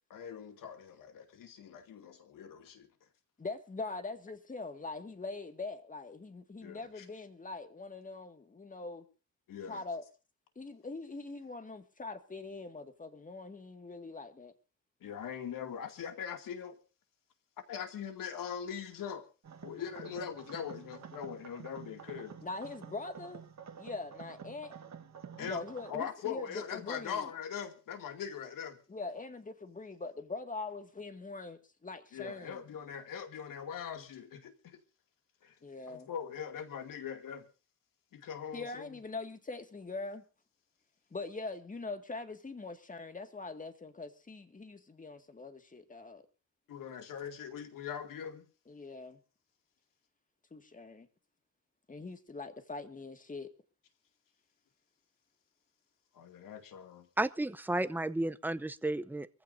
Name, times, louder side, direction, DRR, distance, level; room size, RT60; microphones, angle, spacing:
voice 1, 0.1-2.9 6.6-7.1 9.5-9.8 15.0-16.8 17.7-19.2 19.6-22.4 25.4-25.6 25.9-28.8 32.1-34.8 35.4-35.5 35.9-37.4 38.1-38.9 46.7-48.4 56.1-57.1, left 8 dB, 85° left, 2.5 m, -41 dB
voice 2, 3.4-9.1 9.7-10.0 10.6-14.5 22.4-23.4 23.8-24.7 25.3-27.3 28.9-32.6 35.6-36.1 38.5-40.2 41.1-46.2 48.7-49.2 50.5-51.1 51.9-53.5, left 3 dB, 25° left, 2.0 m, -42 dB
sound 1, 19.4-25.9, right 7 dB, 55° right, 1.4 m, -49 dB
voice 3, 57.2-59.3, right 2 dB, 5° right, 0.7 m, -32 dB
24.0 x 15.5 x 2.7 m
cardioid pair, 105°, 32 cm